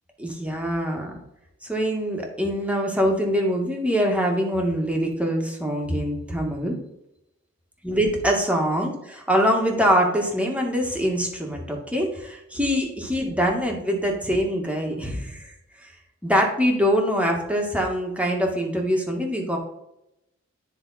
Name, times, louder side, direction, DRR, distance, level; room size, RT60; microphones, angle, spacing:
voice 1, 0.2-1.1 1.6-6.8 7.8-15.9 16.2-19.6, equal, 5° right, -1 dB, 1.9 m, -24 dB
10.0 x 3.5 x 4.3 m, 0.85 s
wide cardioid pair, 45°, 30 cm